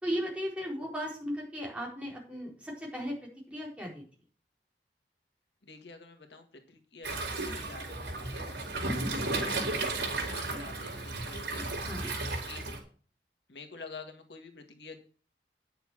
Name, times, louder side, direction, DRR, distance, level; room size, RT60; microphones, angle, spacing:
voice 1, 0.0-3.1 3.5-4.0 11.8-12.1, equal, 5° right, -3 dB, 4.2 m, -36 dB
voice 2, 5.6-9.6 10.0-12.0 12.2-12.6 13.5-15.0, left 4 dB, 85° left, 5 dB, 1.8 m, -48 dB
Waves surf, 7.0-12.8, right 2 dB, 90° right, 3.9 m, -34 dB
9.7 x 6.8 x 6.1 m, 0.40 s
head